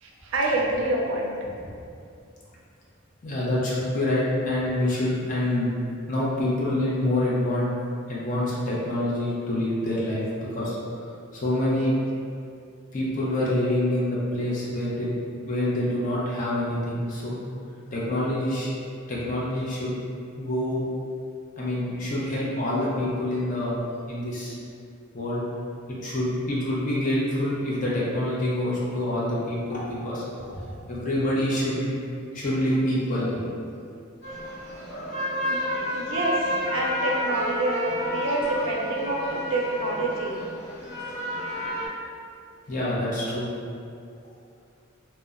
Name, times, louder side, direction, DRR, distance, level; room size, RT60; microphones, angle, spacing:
voice 1, 0.0-1.4 35.4-36.4 36.7-40.4, right 2 dB, 70° right, -1 dB, 0.4 m, -27 dB
voice 2, 3.2-5.7 6.1-7.7 8.1-10.2 10.5-10.8 11.3-11.9 12.9-15.2 15.5-17.4 17.9-18.7 19.1-19.9 20.4-20.9 21.6-23.8 24.1-24.5 25.1-25.4 25.9-30.2 30.5-32.0 32.3-33.4 42.7-43.5, left 1 dB, 40° left, -7 dB, 0.5 m, -26 dB
sound 1, 34.2-41.9, left 1 dB, 60° left, 0.9 m, -30 dB
2.7 x 2.0 x 2.3 m, 2.4 s
head